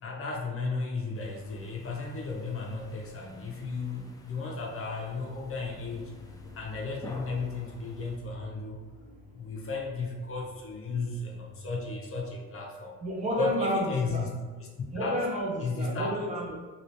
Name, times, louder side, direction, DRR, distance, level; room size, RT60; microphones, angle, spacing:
voice 1, 0.0-6.2 6.5-8.8 9.4-12.9 13.4-14.3 14.6-14.7 15.0-15.2 15.6-16.3, left 3 dB, 45° left, -1 dB, 0.7 m, -34 dB
sound 1, 1.1-8.2, left 1 dB, 10° left, 0.4 m, -51 dB
sound 2, 5.0-12.9, left 2 dB, 85° left, 0.5 m, -51 dB
voice 2, 13.0-14.2 14.9-16.6, equal, 25° right, -3 dB, 0.8 m, -31 dB
3.0 x 2.9 x 2.8 m, 1.4 s
cardioid pair, 90°, 30 cm